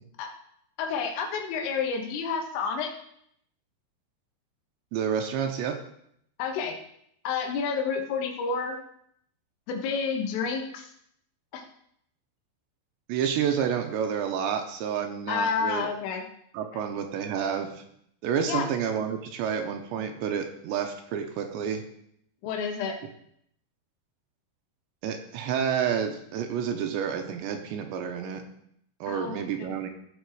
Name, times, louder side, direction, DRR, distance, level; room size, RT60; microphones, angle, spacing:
voice 1, 0.8-2.9 6.4-6.8 7.3-8.8 9.7-10.9 11.5-11.6 15.3-16.2 16.7-16.8 18.5-18.7 22.4-23.0 29.1-29.7, left 5 dB, 90° left, 3 dB, 4.0 m, -30 dB
voice 2, 4.9-5.7 13.1-15.9 16.5-17.8 18.2-21.8 25.0-28.4 29.0-29.9, right 8 dB, 75° right, 5 dB, 2.9 m, -29 dB
16.0 x 6.2 x 4.8 m, 0.72 s
omnidirectional pair, 5.6 m